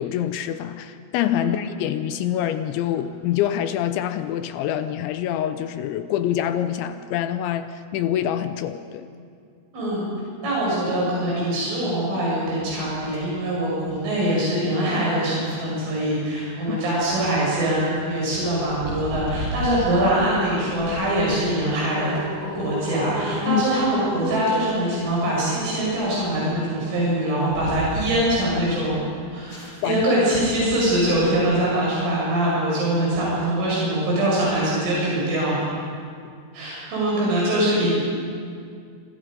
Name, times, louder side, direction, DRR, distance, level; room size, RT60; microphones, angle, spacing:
voice 1, 0.0-9.1 16.7-16.8 23.5-23.7 29.8-30.1, left 11 dB, 80° left, 10 dB, 2.9 m, -25 dB
voice 2, 9.7-10.1 10.4-22.1 22.6-29.0 29.3-35.6 36.5-37.9, right 1 dB, 75° right, -6 dB, 8.7 m, -23 dB
sound 1, 12.9-31.7, left 1 dB, 25° left, 4.5 m, -36 dB
27.0 x 26.5 x 5.3 m, 2.3 s
omnidirectional pair, 5.7 m